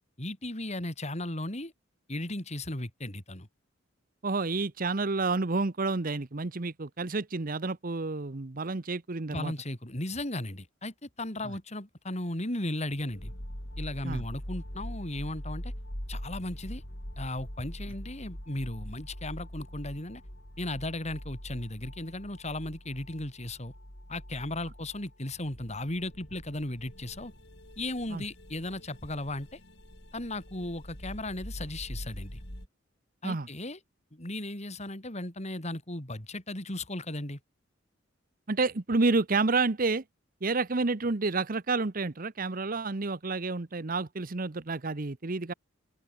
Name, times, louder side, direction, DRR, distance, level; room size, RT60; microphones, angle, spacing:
voice 1, 0.2-1.7 2.1-3.5 9.3-13.3 13.8-15.7 16.1-16.8 17.2-20.2 20.6-23.7 24.1-27.3 27.8-29.6 30.1-32.4 33.2-33.8 34.1-37.4, left 1 dB, 35° left, 4.8 m, -36 dB
voice 2, 4.2-9.5 11.4-11.5 14.0-14.2 28.1-28.2 33.2-33.5 38.5-40.0 40.4-45.5, right 3 dB, 45° right, 1.0 m, -29 dB
sound 1, 13.0-32.7, equal, 60° left, 7.8 m, -43 dB
open air
head